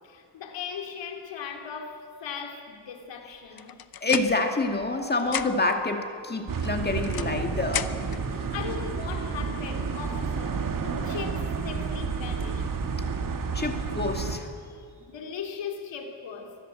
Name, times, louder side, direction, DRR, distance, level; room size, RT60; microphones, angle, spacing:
voice 1, 0.0-3.8 8.3-12.7 15.1-16.6, left 7 dB, 90° left, 3 dB, 3.3 m, -38 dB
sound 1, 3.6-4.9 5.2-5.8 6.6-8.2, left 9 dB, 55° left, 1.0 m, -35 dB
voice 2, 4.0-7.9 13.5-14.5, left 2 dB, 25° left, 4 dB, 2.2 m, -27 dB
sound 2, 6.5-14.4, right 5 dB, 50° right, 2.1 m, -30 dB
25.0 x 20.0 x 7.8 m, 2.3 s
cardioid pair, 120°, 43 cm